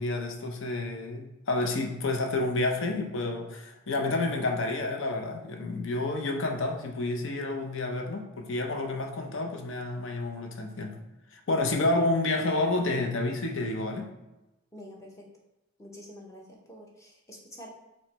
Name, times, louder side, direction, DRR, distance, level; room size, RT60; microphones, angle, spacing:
voice 1, 0.0-11.0 11.3-14.1, left 2 dB, 60° left, 3 dB, 0.6 m, -29 dB
voice 2, 14.7-15.1 15.8-16.4 16.7-17.7, equal, 15° left, -2 dB, 0.7 m, -46 dB
4.6 x 2.1 x 4.0 m, 1.0 s
head